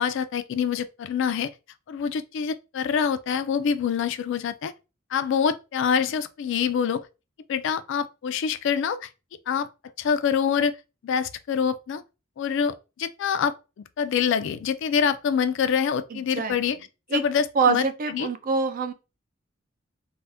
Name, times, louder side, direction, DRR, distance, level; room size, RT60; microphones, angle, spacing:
voice 1, 0.0-1.5 1.9-4.7 5.1-7.1 7.5-9.1 9.5-9.7 10.0-10.7 11.0-12.0 12.4-16.8 17.1-18.3, left 7 dB, 65° left, 0.3 m, -25 dB
voice 2, 16.1-16.5 17.1-17.2 17.6-18.9, right 4 dB, 45° right, 0.4 m, -25 dB
2.7 x 2.1 x 3.3 m
head